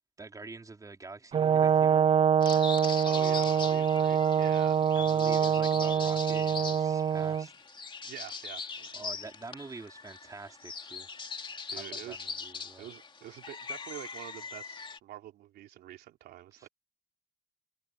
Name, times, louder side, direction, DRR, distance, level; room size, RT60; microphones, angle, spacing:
voice 1, 0.2-2.1 4.9-7.5 8.9-11.1 11.7-12.9 16.6-16.7, right 3 dB, 20° right, 4.2 m, -46 dB
Brass instrument, 1.3-7.5, right 8 dB, 35° right, 0.7 m, -25 dB
sound 1, 2.4-15.0, left 5 dB, 30° left, 2.8 m, -41 dB
voice 2, 3.0-4.9 8.0-9.0 11.7-12.4 12.8-16.7, right 14 dB, 75° right, 3.4 m, -46 dB
cardioid pair, 110°, 17 cm